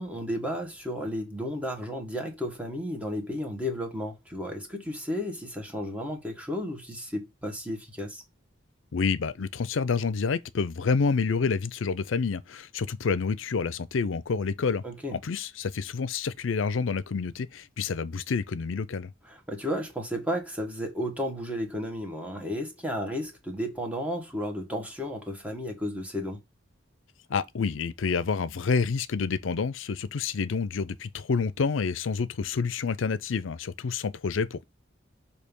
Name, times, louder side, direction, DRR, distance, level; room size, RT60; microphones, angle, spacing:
voice 1, 0.0-8.2 14.8-15.2 19.2-26.4, equal, 5° right, 1.4 m, -33 dB
voice 2, 8.9-14.8 15.1-19.1 27.3-34.7, left 5 dB, 75° left, 0.5 m, -28 dB
6.5 x 2.8 x 5.2 m
head